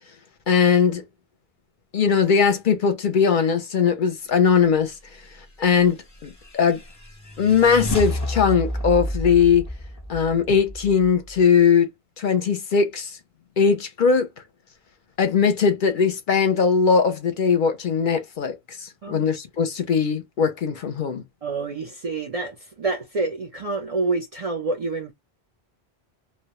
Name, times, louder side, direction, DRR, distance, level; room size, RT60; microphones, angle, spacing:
voice 1, 0.5-1.0 1.9-4.9 5.6-6.0 6.2-6.8 7.4-9.6 10.1-11.9 12.2-13.1 13.6-14.3 15.2-21.2, left 6 dB, 60° left, 0.6 m, -20 dB
sound 1, 5.8-11.4, left 1 dB, 20° left, 0.6 m, -31 dB
voice 2, 21.4-25.1, right 3 dB, 50° right, 0.4 m, -27 dB
2.2 x 2.0 x 2.8 m
omnidirectional pair, 1.1 m